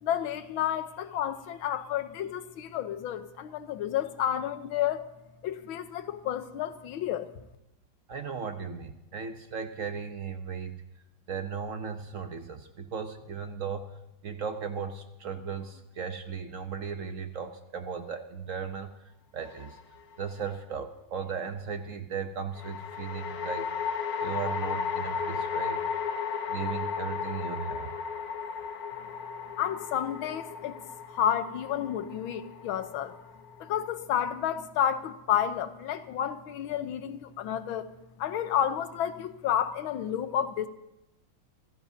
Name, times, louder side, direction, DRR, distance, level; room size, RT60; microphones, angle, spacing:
voice 1, 0.0-5.0 5.4-7.3 29.6-30.8 31.1-33.1 33.6-37.9 38.2-40.7, left 10 dB, 90° left, 11 dB, 1.6 m, -30 dB
voice 2, 8.1-10.8 11.3-14.0 14.2-18.9 19.3-19.8 20.2-23.7 24.2-25.8 26.5-27.9, right 6 dB, 60° right, 7 dB, 0.9 m, -36 dB
sound 1, 19.4-20.1 22.6-33.9, left 6 dB, 55° left, 1.2 m, -35 dB
27.0 x 16.0 x 2.7 m, 0.89 s
omnidirectional pair, 2.2 m